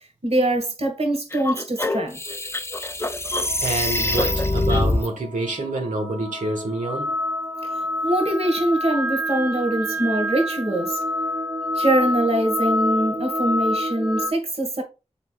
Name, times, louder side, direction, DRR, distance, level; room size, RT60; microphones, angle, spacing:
voice 1, 0.2-2.2 7.6-11.0 11.8-14.8, right 1 dB, 55° right, 1.9 m, -23 dB
sound 1, 1.3-5.1, left 2 dB, 20° left, 0.5 m, -24 dB
sound 2, 3.4-14.3, left 1 dB, 15° right, 0.8 m, -28 dB
voice 2, 3.6-7.1, right 2 dB, 80° right, 1.7 m, -27 dB
7.3 x 5.3 x 2.5 m
wide cardioid pair, 70°, 13 cm